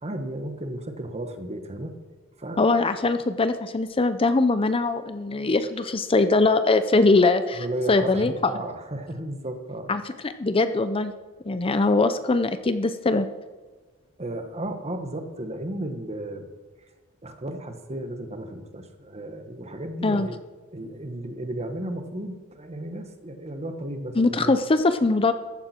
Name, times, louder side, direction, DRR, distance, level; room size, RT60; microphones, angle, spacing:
voice 1, 0.0-1.9 2.4-2.6 7.6-9.9 14.2-16.5 17.2-20.4 20.7-24.5, right 1 dB, 30° right, 7 dB, 1.4 m, -34 dB
voice 2, 2.6-8.5 9.9-11.1 11.5-13.3 20.0-20.3 24.2-25.3, left 3 dB, 25° left, 10 dB, 0.6 m, -22 dB
14.5 x 12.5 x 4.4 m, 1.3 s
head